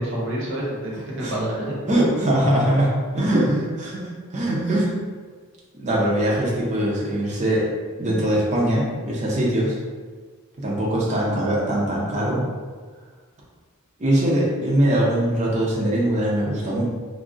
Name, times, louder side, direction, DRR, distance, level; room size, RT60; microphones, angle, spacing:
voice 1, 0.0-1.8 3.1-3.6, right 1 dB, 55° right, -6 dB, 0.9 m, -28 dB
voice 2, 1.9-2.9 3.2-4.9 5.7-7.7 8.0-9.8 10.6-12.4 14.0-16.8, right 1 dB, 30° right, -5 dB, 0.6 m, -22 dB
2.4 x 2.0 x 3.7 m, 1.5 s
head